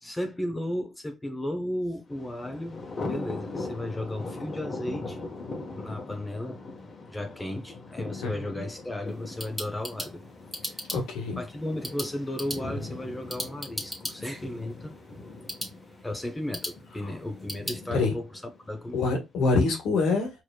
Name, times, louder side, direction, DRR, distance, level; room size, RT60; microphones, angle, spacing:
voice 1, 0.0-2.8 3.1-5.3 5.7-6.6 7.1-10.2 10.6-10.8 11.4-14.9 16.0-19.0, left 1 dB, 15° left, 0.8 m, -34 dB
Thunder, 2.1-19.1, left 2 dB, 40° left, 1.2 m, -40 dB
voice 2, 8.2-8.6 10.9-11.4 17.9-18.1 18.9-20.3, left 3 dB, 85° left, 1.6 m, -25 dB
sound 1, 9.1-17.8, equal, 5° right, 1.6 m, -39 dB
4.8 x 3.0 x 2.3 m
cardioid pair, 90°, 0 cm